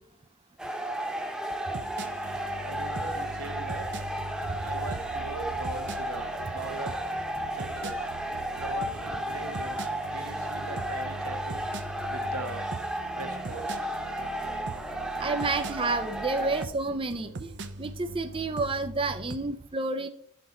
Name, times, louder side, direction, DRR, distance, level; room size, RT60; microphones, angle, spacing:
sound 1, 0.6-16.6, right 1 dB, 5° right, 1.0 m, -33 dB
sound 2, 1.7-19.4, right 2 dB, 60° right, 0.8 m, -41 dB
voice 1, 2.6-3.9 4.6-7.0 7.5-8.1 8.6-9.8 10.1-11.6 12.1-12.7 13.1-13.8, right 2 dB, 85° right, 1.4 m, -41 dB
voice 2, 15.2-17.5 17.8-20.1, right 3 dB, 25° right, 0.6 m, -30 dB
12.0 x 5.9 x 4.3 m
head